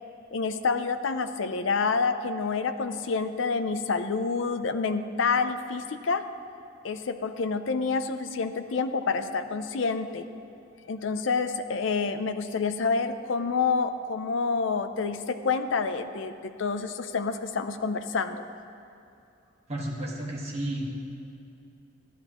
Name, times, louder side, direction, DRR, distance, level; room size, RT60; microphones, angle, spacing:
voice 1, 0.3-6.3 6.8-10.3 10.9-18.4, left 4 dB, 70° left, 9 dB, 0.5 m, -28 dB
voice 2, 19.7-20.8, right 1 dB, 35° right, -4 dB, 1.6 m, -32 dB
14.0 x 11.5 x 3.0 m, 2.7 s
head